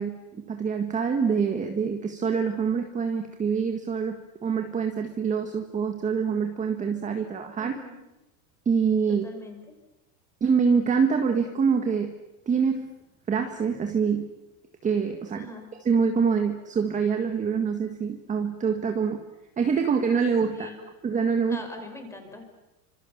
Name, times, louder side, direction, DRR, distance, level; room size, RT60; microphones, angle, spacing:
voice 1, 0.0-7.8 8.6-9.2 10.4-12.1 12.5-12.9 13.3-14.3 14.8-15.4 15.8-19.2 19.6-20.7 21.0-21.6, right 6 dB, 15° right, 6 dB, 1.7 m, -25 dB
voice 2, 7.6-8.1 9.1-9.7 15.3-15.7 20.5-20.8 21.5-22.5, left 2 dB, 5° left, 5 dB, 5.2 m, -42 dB
29.5 x 26.5 x 7.2 m, 0.96 s
supercardioid pair, 155°, 44 cm